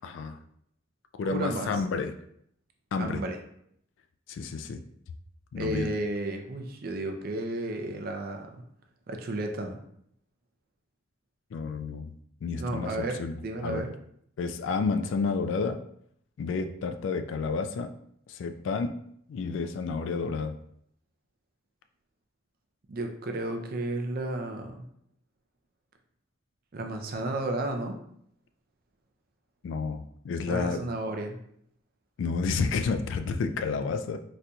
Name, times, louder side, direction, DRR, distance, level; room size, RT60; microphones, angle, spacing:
voice 1, 0.0-0.4 1.2-2.1 2.9-3.2 4.3-4.8 5.5-5.9 11.5-12.1 12.4-12.9 13.2-13.4 13.6-13.8 14.4-15.8 16.4-17.9 18.3-19.0 19.3-20.5 29.6-30.8 32.2-34.2, left 4 dB, 75° left, 7 dB, 0.3 m, -30 dB
voice 2, 1.3-1.8 3.0-3.4 5.6-8.6 9.1-9.8 12.5-13.9 22.9-24.9 26.7-28.0 30.5-31.4, right 1 dB, 50° right, 4 dB, 0.4 m, -33 dB
4.1 x 2.6 x 2.2 m, 0.70 s
head